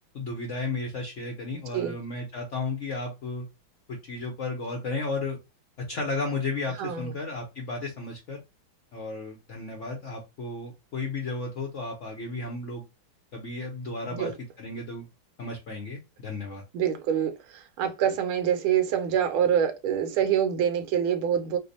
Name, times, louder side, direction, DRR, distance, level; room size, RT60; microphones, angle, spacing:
voice 1, 0.1-3.4 4.0-5.4 5.9-8.4 8.9-12.8 13.3-14.3 14.6-15.1 15.4-16.6, left 3 dB, 80° left, 0.6 m, -33 dB
voice 2, 6.8-7.1 14.2-14.3 16.7-21.6, right 9 dB, 90° right, 1.5 m, -26 dB
3.3 x 2.0 x 3.9 m
omnidirectional pair, 2.2 m